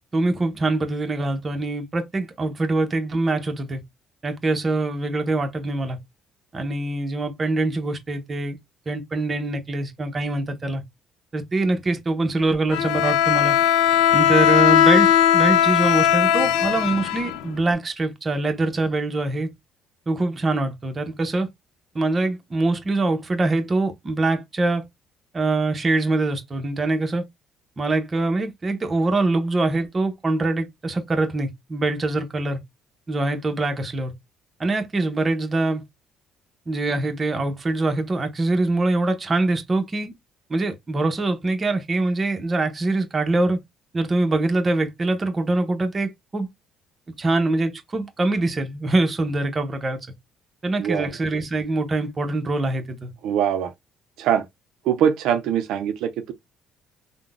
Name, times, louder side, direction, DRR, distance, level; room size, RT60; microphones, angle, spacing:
voice 1, 0.1-3.8 4.2-6.0 6.5-8.6 8.9-10.8 11.3-13.6 14.1-19.5 20.1-21.5 21.9-24.8 25.3-27.2 27.8-32.6 33.1-34.1 34.6-35.8 36.7-40.1 40.5-43.6 43.9-46.5 47.2-50.0 50.6-53.1, right 2 dB, 30° right, 0.7 m, -24 dB
Bowed string instrument, 12.7-17.7, left 10 dB, 90° left, 0.3 m, -18 dB
voice 2, 50.8-51.1 53.2-53.7 54.2-54.4 54.9-56.3, right 9 dB, 75° right, 0.4 m, -22 dB
3.6 x 2.1 x 2.3 m
cardioid pair, 95°, 0 cm